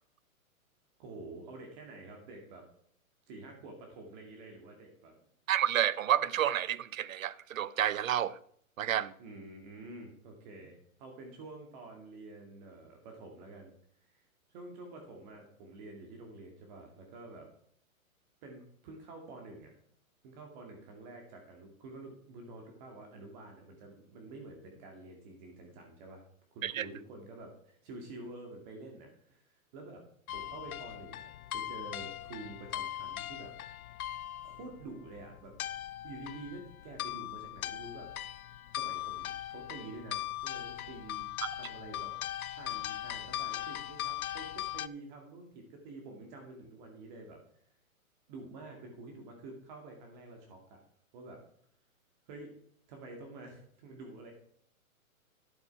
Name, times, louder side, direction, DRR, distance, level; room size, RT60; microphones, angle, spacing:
voice 1, 1.0-2.7 3.3-5.1 9.2-14.2 14.5-17.5 18.4-19.7 20.2-26.2 26.5-30.0 30.3-33.5 34.4-35.5 36.0-38.1 38.7-41.3 41.5-47.4 48.3-50.8 51.1-51.4 52.3-52.6 52.9-54.3, right 2 dB, 30° right, 2.2 m, -48 dB
voice 2, 5.5-8.4 8.8-9.1 26.6-26.9 41.4-41.5, right 11 dB, 70° right, 0.8 m, -30 dB
sound 1, 30.3-44.9, left 13 dB, 80° left, 0.6 m, -40 dB
11.5 x 7.6 x 4.7 m
hypercardioid pair, 150°, 43 cm